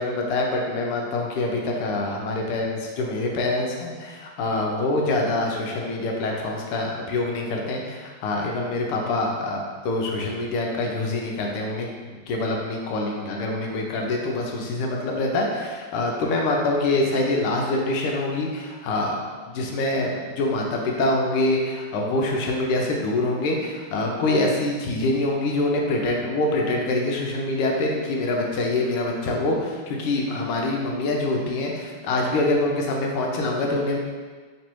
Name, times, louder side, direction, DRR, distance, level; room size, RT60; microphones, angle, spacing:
voice 1, 0.0-9.6 9.8-11.9 12.3-19.1 19.4-34.0, left 2 dB, 85° left, 0 dB, 1.6 m, -25 dB
3.6 x 3.2 x 4.4 m, 1.5 s
omnidirectional pair, 2.4 m